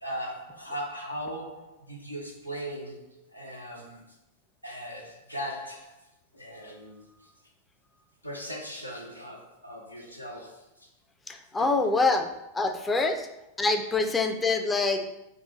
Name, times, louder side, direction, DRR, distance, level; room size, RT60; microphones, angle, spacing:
voice 1, 0.0-4.2 4.6-6.1 6.3-7.1 8.2-10.9 11.6-11.7 12.8-13.1 14.4-14.5, equal, 90° left, 0 dB, 0.7 m, -39 dB
voice 2, 11.3-12.3 12.5-13.3 13.6-15.2, left 3 dB, 15° left, 6 dB, 0.4 m, -25 dB
3.6 x 2.3 x 4.1 m, 0.88 s
figure-of-eight pair, 90°, 0 cm